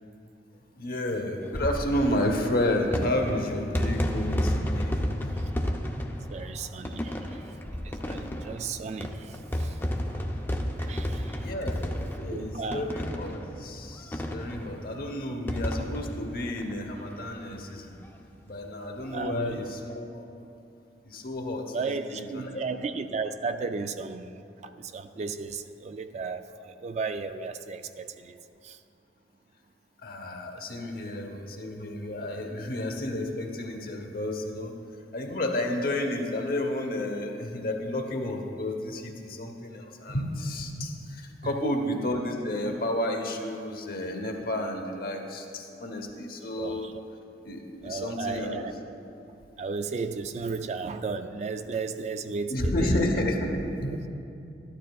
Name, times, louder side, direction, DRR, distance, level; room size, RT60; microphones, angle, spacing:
voice 1, 0.8-5.5 7.1-7.2 11.4-18.0 18.5-20.5 21.0-22.6 30.0-34.7 35.1-46.9 47.4-48.7 52.5-54.0, left 1 dB, 55° left, 3 dB, 0.9 m, -31 dB
sound 1, 1.4-17.4 17.8-17.9 18.0-18.1 19.4-19.7, equal, 10° left, 0.5 m, -32 dB
voice 2, 6.3-7.5 7.8-9.8 10.1-10.2 10.8-11.5 12.3-12.9 19.1-19.6 21.7-28.8 41.4-41.7 46.6-46.9 47.8-48.7 49.6-53.1, right 4 dB, 40° right, 9 dB, 0.3 m, -35 dB
13.5 x 11.5 x 2.3 m, 2.6 s
head